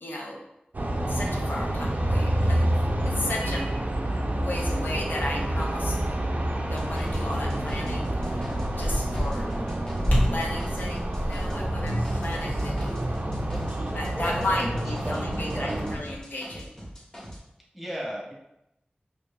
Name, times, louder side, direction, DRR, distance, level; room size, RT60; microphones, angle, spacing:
voice 1, 0.0-0.4 1.1-2.6 3.0-3.7 4.4-6.0 6.7-8.1 8.8-9.5 10.3-13.2 13.9-16.7, left 1 dB, 75° left, -1 dB, 0.7 m, -34 dB
sound 1, 0.7-16.0, right 1 dB, 55° right, 0.5 m, -28 dB
sound 2, 6.7-11.6 11.9-17.4, equal, 25° left, 1.4 m, -42 dB
sound 3, 6.8-14.4 14.7-16.2, equal, 50° left, 1.0 m, -32 dB
voice 2, 13.6-14.7 15.0-15.8 17.7-18.3, equal, ahead, -3 dB, 1.1 m, -35 dB
4.4 x 2.7 x 2.6 m, 0.83 s
wide cardioid pair, 45°, 3 cm